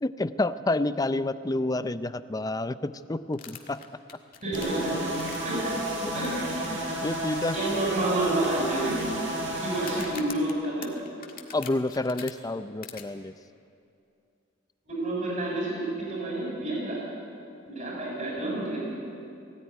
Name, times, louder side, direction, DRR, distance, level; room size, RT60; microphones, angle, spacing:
voice 1, 0.0-3.8 6.0-6.1 6.7-7.6 11.5-13.3, left 2 dB, 20° left, 12 dB, 0.5 m, -29 dB
sound 1, 3.3-5.7 6.2-6.7 6.9-7.0 7.5-7.6 8.3-9.1 9.8-12.3 12.8-13.0, left 8 dB, 45° left, 1.7 m, -44 dB
voice 2, 4.4-5.1 5.4-5.9 6.1-6.4 7.5-9.0 9.6-10.9 14.9-17.0 17.7-18.9, right 2 dB, 40° right, -3 dB, 7.5 m, -29 dB
sound 2, 4.5-10.1, right 1 dB, 65° right, 6.4 m, -32 dB
19.0 x 16.0 x 9.7 m, 2.6 s
head